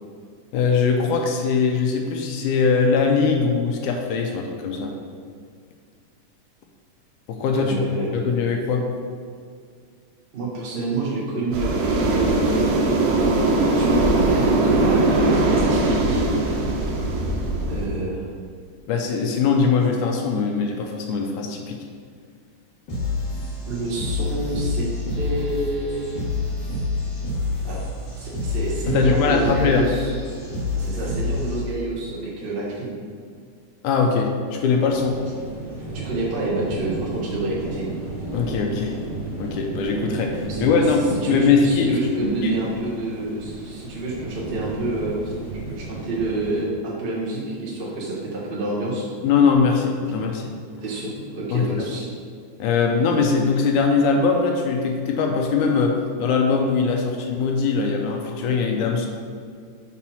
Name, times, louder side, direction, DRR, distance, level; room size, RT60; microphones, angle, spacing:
voice 1, 0.5-4.9 7.3-7.8 8.1-8.9 18.9-21.8 28.9-29.9 33.8-35.2 38.3-39.0 39.4-42.0 42.4-42.5 49.2-50.5 51.5-51.9 52.6-59.1, left 5 dB, 80° left, 2 dB, 2.0 m, -21 dB
voice 2, 7.6-8.1 10.3-12.8 13.1-16.2 17.7-18.2 23.7-24.9 25.2-26.1 27.6-27.8 28.2-30.0 30.7-33.0 35.9-37.9 40.5-40.7 41.2-45.3 45.7-49.1 50.8-52.1, right 2 dB, 65° right, -6 dB, 0.5 m, -28 dB
sound 1, 11.5-17.9, right 2 dB, 80° right, 2.3 m, -20 dB
sound 2, 22.9-31.9, left 3 dB, 50° left, 2.7 m, -27 dB
sound 3, 34.8-46.6, right 2 dB, 25° right, 1.1 m, -34 dB
6.0 x 4.1 x 5.7 m, 2.2 s
omnidirectional pair, 3.7 m